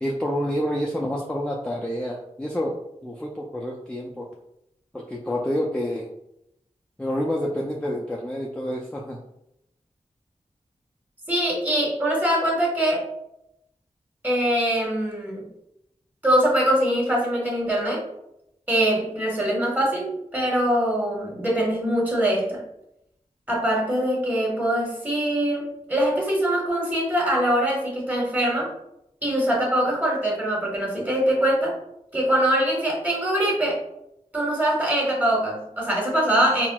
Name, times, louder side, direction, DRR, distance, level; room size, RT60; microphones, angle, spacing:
voice 1, 0.0-2.7 3.0-4.3 4.9-6.1 7.0-9.2, equal, 10° left, -2 dB, 0.4 m, -28 dB
voice 2, 11.3-13.1 14.2-15.4 16.2-18.0 18.7-22.6 23.5-28.7 29.2-31.8 32.1-33.8 34.3-36.7, right 1 dB, 15° right, -3 dB, 1.2 m, -23 dB
4.1 x 2.1 x 2.2 m, 0.81 s
cardioid pair, 55°, 13 cm